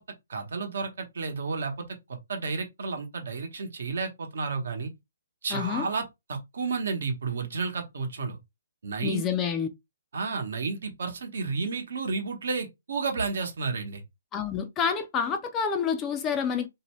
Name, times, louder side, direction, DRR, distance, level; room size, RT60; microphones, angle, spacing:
voice 1, 0.3-1.8 2.3-4.9 5.4-8.4 8.8-9.2 10.1-14.0, right 4 dB, 65° right, 0.9 m, -31 dB
voice 2, 5.5-5.9 9.0-9.7 14.3-16.7, left 6 dB, 15° left, 0.3 m, -28 dB
2.6 x 2.1 x 3.0 m
hypercardioid pair, 155°, 0 cm